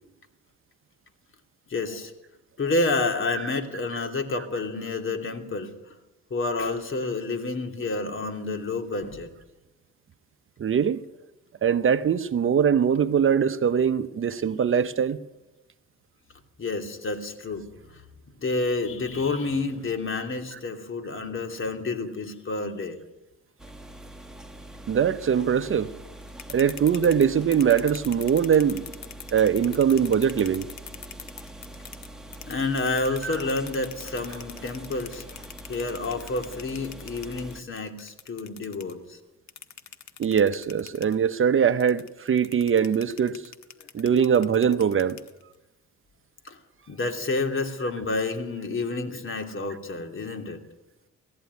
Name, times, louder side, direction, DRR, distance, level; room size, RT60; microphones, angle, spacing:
voice 1, 1.7-2.1 2.6-5.7 6.3-9.3 16.6-17.6 18.4-23.0 32.5-35.4 35.7-39.2 43.8-43.9 46.4-46.6 46.9-50.6, left 3 dB, 40° left, 2.9 m, -29 dB
voice 2, 10.6-11.0 11.6-15.2 20.5-20.6 24.9-25.9 26.5-28.9 29.3-30.7 33.2-33.4 40.2-43.5 43.9-45.2, right 7 dB, 45° right, 0.9 m, -22 dB
sound 1, 23.6-37.6, right 1 dB, ahead, 1.9 m, -44 dB
sound 2, 26.2-32.1 32.3-38.9 39.5-41.1 41.8-45.5, left 8 dB, 65° left, 1.7 m, -42 dB
19.5 x 14.0 x 9.5 m
cardioid pair, 90°, 30 cm